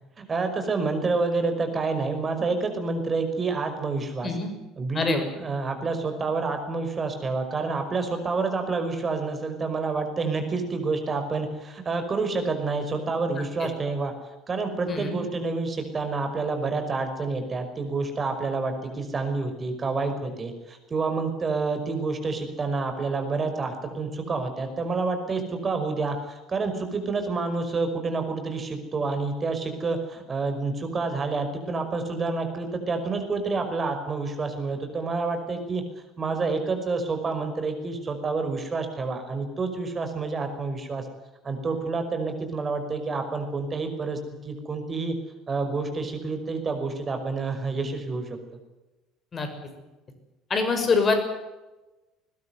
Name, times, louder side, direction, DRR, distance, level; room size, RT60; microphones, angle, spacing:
voice 1, 0.2-4.3 4.8-14.1 14.5-35.8 36.2-41.1 41.4-45.2 45.5-48.4, right 3 dB, 30° right, 7 dB, 5.5 m, -28 dB
voice 2, 14.9-15.2 49.3-49.5 50.5-51.2, left 4 dB, 35° left, 7 dB, 6.4 m, -24 dB
21.0 x 21.0 x 8.0 m, 1.1 s
figure-of-eight pair, 60°, 0 cm